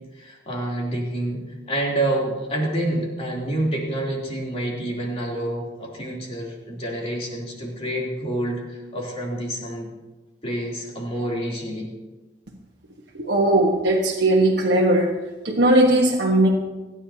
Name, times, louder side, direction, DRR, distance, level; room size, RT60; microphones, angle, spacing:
voice 1, 0.1-9.9 10.4-11.9, right 1 dB, 35° left, -3 dB, 3.3 m, -28 dB
voice 2, 13.2-15.1 15.4-16.5, right 1 dB, 70° right, -2 dB, 1.3 m, -18 dB
29.0 x 9.8 x 2.9 m, 1.2 s
head